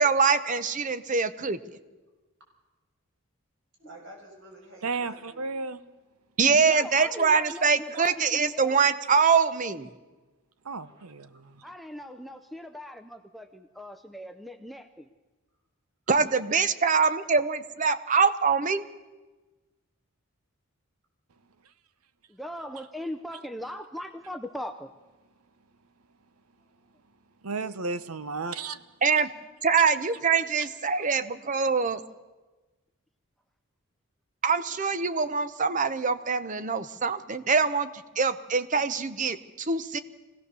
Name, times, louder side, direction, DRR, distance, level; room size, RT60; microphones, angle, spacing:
voice 1, 0.0-1.6 6.4-9.9 16.1-18.8 29.0-29.3 29.6-32.0 34.4-37.9 38.2-40.0, right 5 dB, 35° right, 13 dB, 0.8 m, -24 dB
voice 2, 3.8-5.4 10.8-11.0 11.3-11.4, right 1 dB, 55° right, 0 dB, 6.3 m, -49 dB
voice 3, 4.8-5.8 10.6-11.6 27.4-28.8 30.6-30.7, right 4 dB, 85° right, 13 dB, 0.9 m, -33 dB
voice 4, 6.6-8.8 11.6-15.1 22.3-24.9 31.6-31.8, equal, ahead, 7 dB, 0.5 m, -40 dB
23.5 x 17.0 x 6.9 m, 1.2 s
head